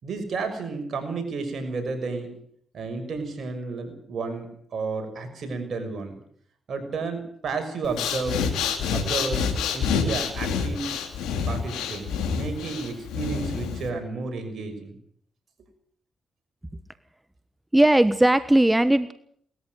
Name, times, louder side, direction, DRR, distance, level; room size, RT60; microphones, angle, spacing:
voice 1, 0.0-2.3 2.7-6.2 6.7-8.5 8.9-10.9 11.5-15.0, right 4 dB, 65° right, 7 dB, 6.2 m, -32 dB
Breathing, 7.8-13.9, left 6 dB, 90° left, 2.7 m, -27 dB
voice 2, 17.7-19.1, right 1 dB, 15° right, 13 dB, 1.2 m, -18 dB
19.5 x 14.0 x 9.5 m, 0.63 s
supercardioid pair, 50°, 0 cm